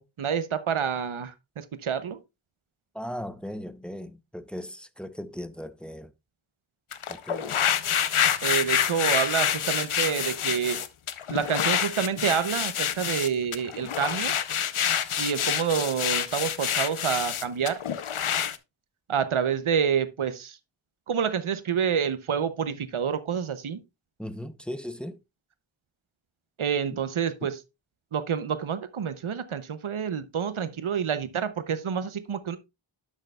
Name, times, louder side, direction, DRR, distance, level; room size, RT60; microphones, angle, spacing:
voice 1, 0.0-2.2 8.4-10.8 11.3-14.4 15.2-17.8 19.1-20.6 21.1-23.8 26.6-27.6 28.1-32.6, right 7 dB, 85° right, 0.7 m, -28 dB
voice 2, 2.9-6.1 7.1-7.6 24.2-25.2 27.4-27.5, equal, ahead, 0.6 m, -37 dB
sound 1, 6.9-18.6, left 8 dB, 90° left, 0.7 m, -27 dB
12.0 x 6.4 x 2.3 m
wide cardioid pair, 55°, 48 cm